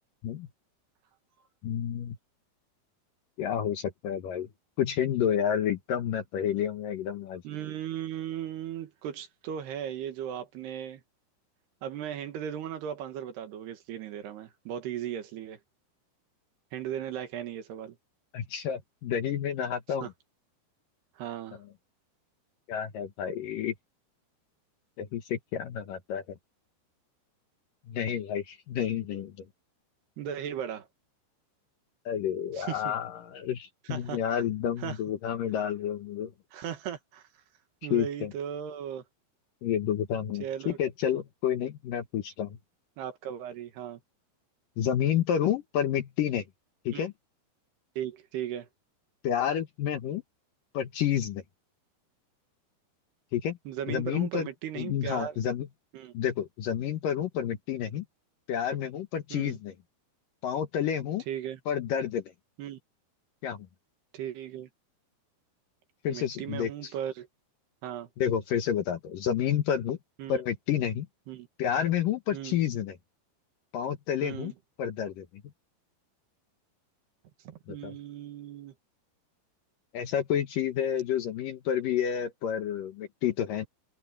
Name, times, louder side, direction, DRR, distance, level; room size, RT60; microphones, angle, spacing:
voice 1, 1.6-2.2 3.4-4.5 4.8-7.4 18.3-20.1 22.7-23.7 25.0-26.2 27.9-29.5 32.1-36.3 37.9-38.3 39.6-42.6 44.8-46.5 46.9-47.1 49.2-50.2 50.7-51.4 53.3-53.6 53.9-54.5 54.8-55.7 56.1-58.0 58.5-59.7 60.4-61.2 61.7-62.2 63.4-63.7 66.0-66.9 68.2-70.0 70.3-71.1 71.6-73.0 73.7-74.5 74.8-75.3 77.7-77.9 79.9-83.7, left 9 dB, 65° left, 2.4 m, -30 dB
voice 2, 7.5-11.0 11.8-15.6 16.7-18.0 20.0-20.1 21.2-21.6 30.2-30.9 32.6-32.9 33.9-34.4 34.8-35.0 36.5-37.2 37.8-39.0 40.4-40.8 43.0-44.0 46.9-47.1 48.0-48.7 53.7-55.4 55.9-56.1 59.3-59.6 61.3-61.6 62.6-62.8 64.1-64.7 66.1-67.3 67.8-68.1 70.2-70.4 71.3-71.5 72.3-72.6 74.2-74.5 77.5-78.7, right 10 dB, 70° right, 3.6 m, -37 dB
omnidirectional pair, 5.0 m